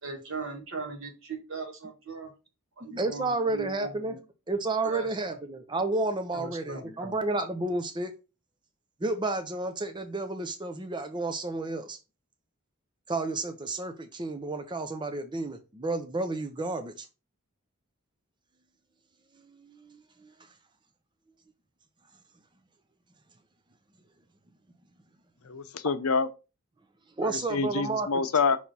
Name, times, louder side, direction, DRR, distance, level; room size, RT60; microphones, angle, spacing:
voice 1, 0.0-2.3 2.8-4.2 4.8-5.4 6.3-7.2, right 4 dB, 65° right, 1.8 m, -39 dB
voice 2, 2.8-4.1 4.5-8.1 9.0-12.0 13.1-17.1 19.6-20.3 27.2-28.1, right 2 dB, 20° right, 0.6 m, -31 dB
voice 3, 25.5-26.3 27.2-28.6, left 5 dB, 80° left, 0.7 m, -27 dB
5.8 x 3.1 x 5.4 m
head